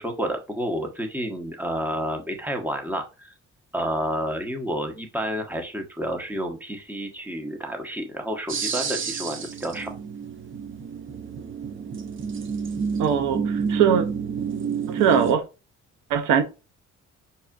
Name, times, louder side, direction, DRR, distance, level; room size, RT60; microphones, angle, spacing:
voice 1, 0.0-3.3 3.7-9.9, equal, 5° right, 0.9 m, -30 dB
sound 1, 8.5-15.3, right 6 dB, 40° right, 0.6 m, -29 dB
voice 2, 13.0-14.1 14.9-15.4 16.1-16.4, right 8 dB, 90° right, 0.6 m, -21 dB
5.4 x 2.4 x 2.4 m
cardioid pair, 90°, 30 cm